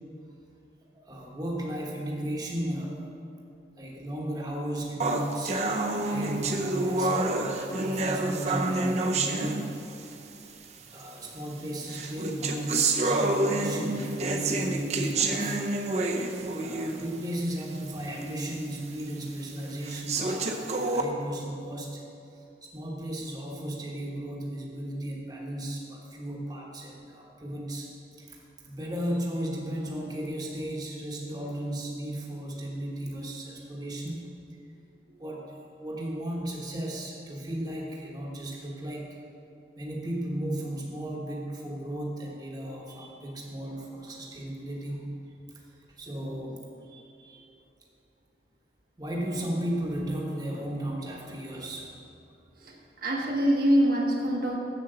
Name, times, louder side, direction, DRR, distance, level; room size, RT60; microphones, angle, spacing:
voice 1, 0.9-3.1 3.8-5.6 6.0-9.7 10.9-15.6 16.4-22.0 22.3-27.9 28.2-34.2 35.2-35.5 35.8-39.2 39.8-45.1 45.5-47.4 49.0-52.1, right 1 dB, 20° right, -2 dB, 1.1 m, -35 dB
sound 1, 5.0-10.1 11.0-11.1 11.9-17.2 17.6-17.7 18.2-18.3 19.0-19.1 19.8-21.0, right 2 dB, 40° right, 0.7 m, -28 dB
voice 2, 53.0-54.6, equal, 55° right, -1 dB, 1.2 m, -24 dB
7.6 x 7.1 x 6.8 m, 2.7 s
head